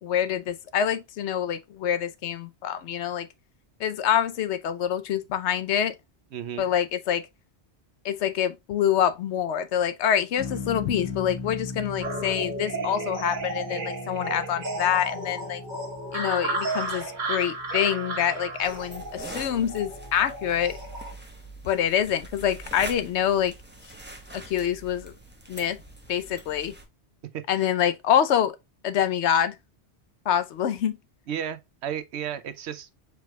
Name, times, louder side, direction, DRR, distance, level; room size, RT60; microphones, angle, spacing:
voice 1, 0.0-3.3 3.8-5.9 6.6-7.3 8.0-15.6 16.1-20.8 21.6-23.5 24.3-25.1 25.5-25.8 26.1-26.7 27.5-28.6 28.8-29.5 30.3-31.0, left 9 dB, 80° left, 0.9 m, -26 dB
voice 2, 6.3-6.7 27.5-27.7 31.3-32.9, right 9 dB, 75° right, 0.9 m, -33 dB
sound 1, 10.4-20.9, left 4 dB, 55° left, 1.3 m, -40 dB
sound 2, 12.0-21.1, right 2 dB, 45° right, 1.4 m, -33 dB
sound 3, 18.6-26.8, right 2 dB, 10° right, 0.9 m, -43 dB
4.7 x 4.6 x 2.2 m
omnidirectional pair, 1.1 m